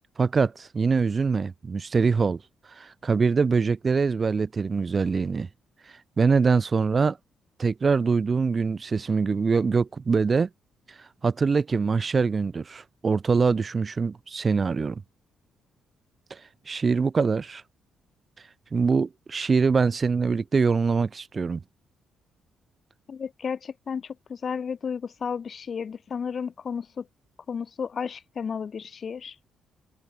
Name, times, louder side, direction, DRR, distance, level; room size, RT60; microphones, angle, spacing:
voice 1, 0.2-2.4 2.8-5.5 6.2-7.2 7.6-10.5 11.2-15.0 16.3-16.4 16.7-17.6 18.7-21.6, right 5 dB, 35° right, 0.4 m, -23 dB
voice 2, 23.1-27.1 27.5-29.4, left 6 dB, 45° left, 0.6 m, -33 dB
cardioid pair, 90°, 0 cm